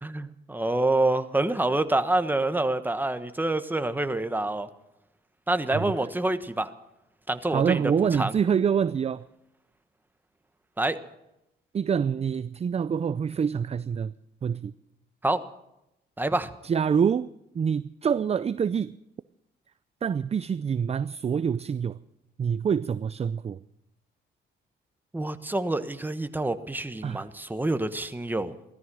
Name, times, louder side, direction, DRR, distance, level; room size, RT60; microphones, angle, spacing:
voice 1, 0.0-4.7 5.5-6.7 7.3-7.8 8.1-8.3 10.8-11.0 15.2-15.4 16.2-16.5 25.1-28.5, right 2 dB, 10° right, 10 dB, 1.3 m, -27 dB
voice 2, 7.5-9.3 11.7-14.1 14.4-14.7 16.6-19.0 20.0-22.0 22.4-23.6 27.0-27.3, right 7 dB, 30° right, 15 dB, 0.5 m, -26 dB
16.5 x 13.5 x 6.3 m, 0.85 s
cardioid pair, 90°, 20 cm